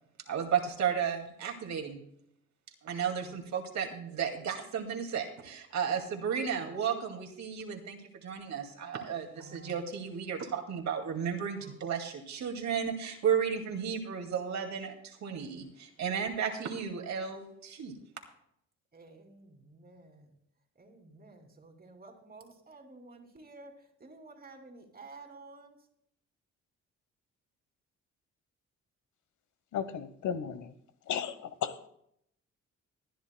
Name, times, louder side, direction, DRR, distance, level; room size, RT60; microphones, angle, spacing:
voice 1, 0.3-2.0 2.8-18.0, right 7 dB, 65° right, 3 dB, 2.3 m, -33 dB
voice 2, 18.9-20.3 20.8-23.7 24.0-25.8, right 3 dB, 30° right, 3 dB, 2.8 m, -52 dB
voice 3, 29.7-30.7 31.1-31.9, left 8 dB, 75° left, 12 dB, 1.1 m, -35 dB
24.0 x 10.5 x 2.3 m, 0.72 s
cardioid pair, 90°, 30 cm